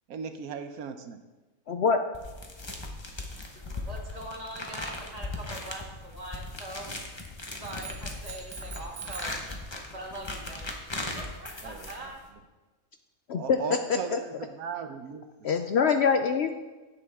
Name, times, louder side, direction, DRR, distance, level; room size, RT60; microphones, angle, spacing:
voice 1, 0.1-1.2 11.6-12.1 13.3-15.5, right 6 dB, 85° right, 8 dB, 1.2 m, -38 dB
voice 2, 1.7-2.0 13.3-13.6 14.1-14.2 15.4-16.5, left 6 dB, 60° left, 7 dB, 0.7 m, -24 dB
sound 1, 2.1-12.3, left 2 dB, 20° left, 1.0 m, -38 dB
voice 3, 3.5-6.9 7.5-9.4 9.9-10.7 11.1-12.2, right 1 dB, 25° right, -1 dB, 1.8 m, -42 dB
sound 2, 7.6-9.5, right 7 dB, 65° right, 1.5 m, -44 dB
11.5 x 8.7 x 3.6 m, 1.2 s
omnidirectional pair, 1.5 m